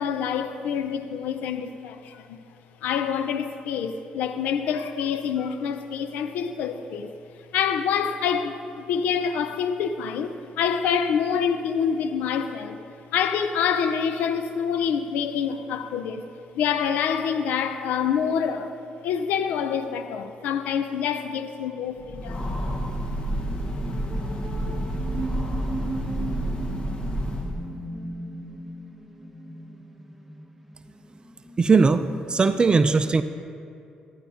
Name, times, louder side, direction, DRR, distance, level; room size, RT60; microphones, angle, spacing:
voice 1, 0.0-2.4 2.8-7.1 7.5-12.8 13.1-16.3 16.5-18.8 19.0-22.5, left 7 dB, 85° left, 0.5 m, -26 dB
Train, 22.0-27.7, equal, 40° left, 1.4 m, -29 dB
sound 1, 23.5-32.7, right 2 dB, 5° right, 1.4 m, -39 dB
voice 2, 31.6-33.2, right 4 dB, 35° right, 0.4 m, -19 dB
14.5 x 12.5 x 2.9 m
cardioid pair, 75°, 3 cm